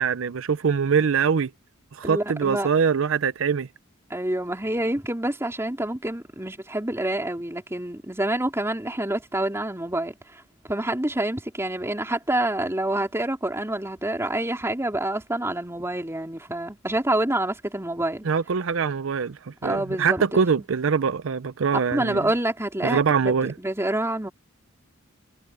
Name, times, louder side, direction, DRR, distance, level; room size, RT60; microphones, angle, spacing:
voice 1, 0.0-1.5 1.9-3.7 18.2-22.2 22.8-23.5, right 6 dB, 75° right, 0.5 m, -23 dB
voice 2, 2.0-2.7 4.1-18.3 19.6-20.4 21.9-23.3 23.6-24.3, right 1 dB, 15° right, 3.2 m, -27 dB
head